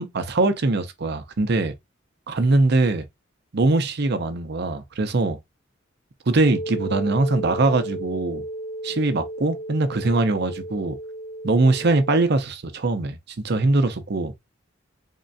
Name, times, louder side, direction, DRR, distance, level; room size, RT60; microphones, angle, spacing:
voice 1, 0.0-1.7 2.3-3.1 3.5-5.4 6.3-8.4 8.8-11.0 11.4-13.2 13.4-14.3, right 2 dB, 60° right, 0.7 m, -22 dB
sound 1, 6.5-12.2, right 1 dB, 75° left, 0.5 m, -34 dB
3.7 x 3.2 x 2.6 m
head